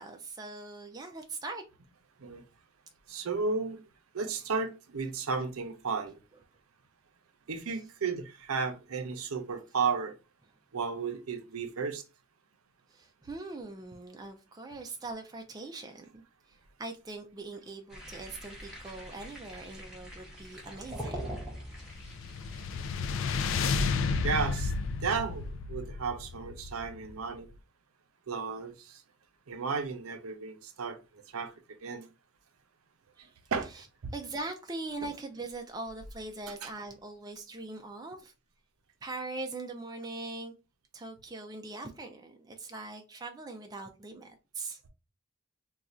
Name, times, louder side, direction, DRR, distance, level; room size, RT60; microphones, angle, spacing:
voice 1, 0.0-1.6 12.9-16.2 16.5-21.4 33.2-33.3 34.1-38.3 39.0-40.5 40.9-44.8, right 3 dB, 20° right, 0.3 m, -41 dB
voice 2, 3.1-3.8 4.1-6.2 7.5-10.2 10.7-12.0 22.6-22.8 24.2-24.7 25.0-27.5 28.3-29.0 29.5-31.5 31.8-32.1 33.2-33.7 34.0-34.1 36.6-36.7, right 5 dB, 85° right, 0.6 m, -34 dB
sound 1, 17.9-23.0, equal, 5° right, 0.7 m, -43 dB
sound 2, 21.8-27.3, left 4 dB, 65° left, 0.3 m, -32 dB
2.5 x 2.3 x 4.1 m
head